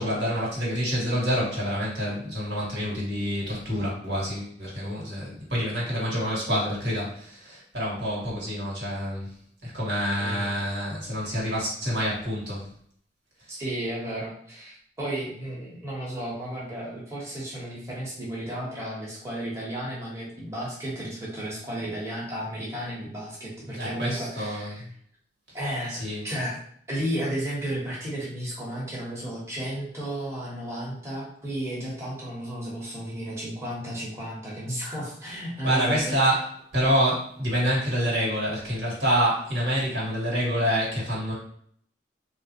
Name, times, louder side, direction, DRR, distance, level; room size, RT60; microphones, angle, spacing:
voice 1, 0.0-9.3 9.6-12.7 23.7-24.9 25.9-26.2 35.6-36.4 36.7-41.3, equal, 75° right, -5 dB, 1.5 m, -27 dB
voice 2, 13.5-24.8 25.5-26.6 26.9-36.1, right 1 dB, 15° right, -6 dB, 0.9 m, -33 dB
3.6 x 2.5 x 2.8 m, 0.64 s
head